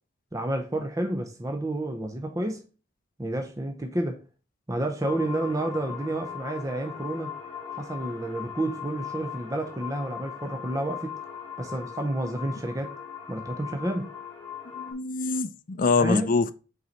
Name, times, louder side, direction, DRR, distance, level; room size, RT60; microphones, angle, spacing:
voice 1, 0.3-2.6 3.2-4.2 4.7-7.3 7.7-11.2 11.6-12.9 13.3-14.1 16.0-16.3, right 1 dB, 15° right, 0.6 m, -30 dB
sound 1, 5.0-14.9, left 8 dB, 10° left, 1.5 m, -39 dB
voice 2, 14.7-16.5, left 4 dB, 40° left, 0.4 m, -25 dB
5.4 x 4.1 x 4.4 m
head